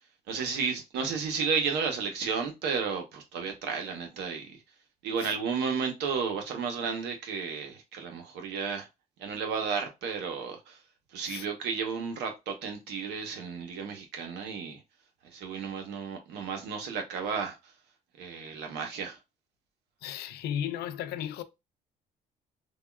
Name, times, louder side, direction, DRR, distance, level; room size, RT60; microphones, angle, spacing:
voice 1, 0.3-4.6 5.0-8.9 9.2-10.8 11.1-14.8 15.3-17.6 18.2-19.2, right 5 dB, 85° right, 0.9 m, -33 dB
voice 2, 20.0-21.4, left 10 dB, 75° left, 0.4 m, -34 dB
3.4 x 2.3 x 2.3 m
cardioid pair, 110°, 17 cm